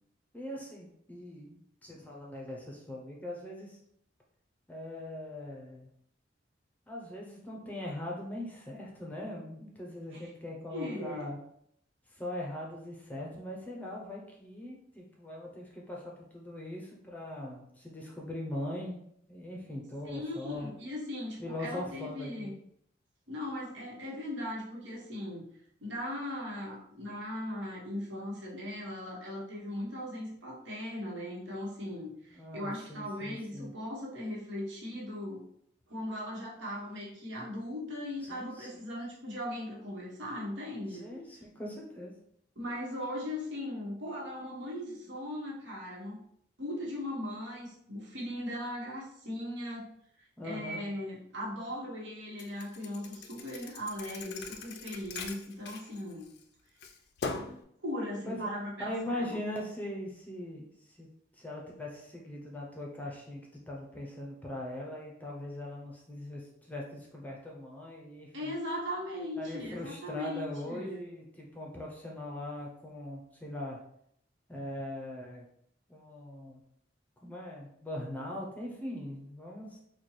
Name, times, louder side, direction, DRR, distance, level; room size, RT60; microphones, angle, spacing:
voice 1, 0.3-3.8 4.7-5.9 6.9-11.4 12.1-19.0 19.3-20.7 21.4-22.6 32.3-33.7 38.3-38.8 40.9-42.1 50.4-50.8 58.3-58.5 58.8-61.1 61.3-68.5 69.4-73.8 74.5-75.5 75.9-76.6 77.2-79.8, left 1 dB, 10° left, -2 dB, 0.5 m, -41 dB
voice 2, 10.7-11.3 20.0-22.5 23.3-25.5 25.8-35.4 35.9-41.1 42.6-46.2 46.6-49.9 50.4-56.3 57.8-59.4 68.3-71.1, left 1 dB, 85° right, -3 dB, 1.1 m, -38 dB
Thump thud, 52.4-56.4 56.8-57.6, left 4 dB, 65° left, 0.4 m, -41 dB
4.2 x 2.2 x 3.1 m, 0.71 s
head